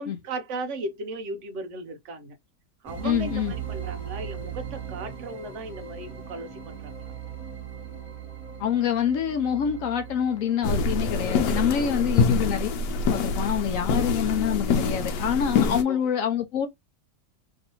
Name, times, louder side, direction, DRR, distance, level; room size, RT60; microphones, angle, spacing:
voice 1, 0.0-2.4 2.8-7.1 12.1-12.4 15.9-16.1, right 2 dB, 60° right, 0.8 m, -36 dB
sound 1, 2.9-12.2, right 8 dB, 20° right, 1.2 m, -39 dB
voice 2, 3.0-3.5 8.6-12.7 13.1-16.7, left 8 dB, 70° left, 0.8 m, -26 dB
sound 2, 10.6-15.8, left 4 dB, 85° left, 1.2 m, -25 dB
3.0 x 2.7 x 2.8 m
omnidirectional pair, 1.8 m